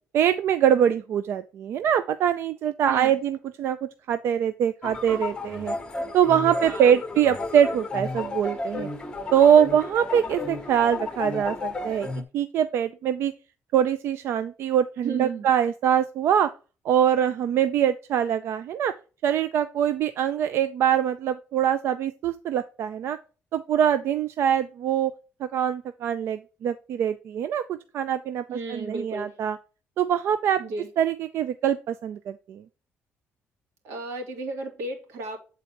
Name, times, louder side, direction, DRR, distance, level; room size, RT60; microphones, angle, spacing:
voice 1, 0.1-5.7 6.1-8.9 9.3-13.3 13.7-16.5 16.8-18.9 19.2-23.2 23.5-25.1 25.4-28.4 28.7-29.6 30.0-30.6 31.0-32.6, right 9 dB, 60° right, 11 dB, 0.4 m, -23 dB
sound 1, 4.8-12.2, left 3 dB, 15° left, 0.9 m, -33 dB
voice 2, 6.6-7.0 15.0-15.5 28.5-29.4 30.6-30.9 33.8-35.4, right 3 dB, 85° right, 3 dB, 2.4 m, -33 dB
8.3 x 4.0 x 4.3 m, 0.34 s
cardioid pair, 170°, 5 cm